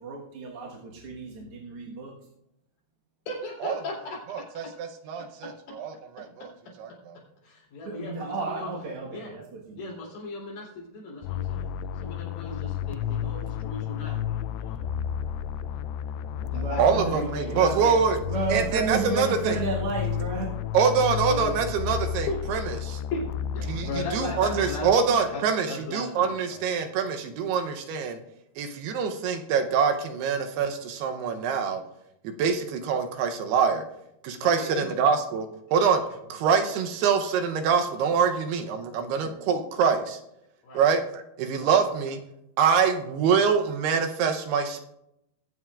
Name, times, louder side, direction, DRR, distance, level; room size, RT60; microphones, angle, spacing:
voice 1, 0.0-2.1 7.8-10.0 16.5-18.0 18.3-20.5 39.2-39.3, right 3 dB, 60° right, -2 dB, 1.5 m, -32 dB
voice 2, 3.3-4.5 7.4-8.7 9.1-9.3 9.8-11.7 12.0-14.2 14.6-14.8 16.5-17.7 21.3-21.6 22.3-22.4 23.1-23.2 23.5-26.6 34.6-34.8 40.6-40.8 41.5-41.7, left 3 dB, 60° left, -4 dB, 5.0 m, -37 dB
voice 3, 4.3-6.5 6.8-7.2 16.8-18.2 18.5-19.6 20.7-23.0 23.6-28.2 28.6-31.8 32.2-33.8 34.2-36.0 36.3-40.2 40.7-42.2 42.6-44.8, right 6 dB, 80° right, 5 dB, 2.8 m, -25 dB
sound 1, 11.2-25.3, left 8 dB, 90° left, 2.7 m, -32 dB
21.5 x 7.8 x 2.5 m, 0.81 s
omnidirectional pair, 4.7 m